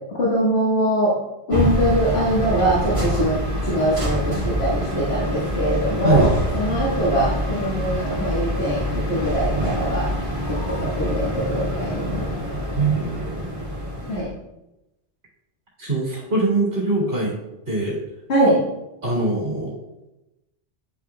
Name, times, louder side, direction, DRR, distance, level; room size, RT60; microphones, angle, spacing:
voice 1, 0.1-1.1 1.5-3.4 3.6-10.1 10.5-12.3 14.1-14.3 18.3-18.6, right 1 dB, 65° left, -7 dB, 1.8 m, -22 dB
sound 1, 1.5-14.2, equal, 30° right, 1.9 m, -25 dB
voice 2, 12.7-13.4 15.8-17.3 17.7-18.0 19.0-19.7, right 3 dB, 80° right, -6 dB, 2.6 m, -22 dB
9.9 x 5.9 x 2.3 m, 0.94 s
omnidirectional pair, 1.1 m